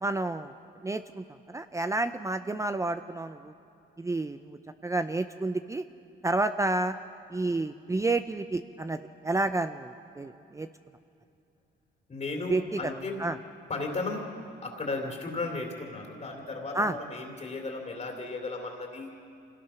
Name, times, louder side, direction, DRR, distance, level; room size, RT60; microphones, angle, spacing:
voice 1, 0.0-0.5 0.8-3.5 4.0-5.8 6.2-6.9 7.3-10.7 12.5-12.6 13.2-13.4 16.7-16.9, right 2 dB, 15° right, 10 dB, 0.5 m, -30 dB
voice 2, 12.1-13.2 13.7-14.3 14.6-19.1, left 3 dB, 35° left, -1 dB, 3.3 m, -35 dB
25.5 x 18.5 x 5.8 m, 2.6 s
cardioid pair, 90°, 20 cm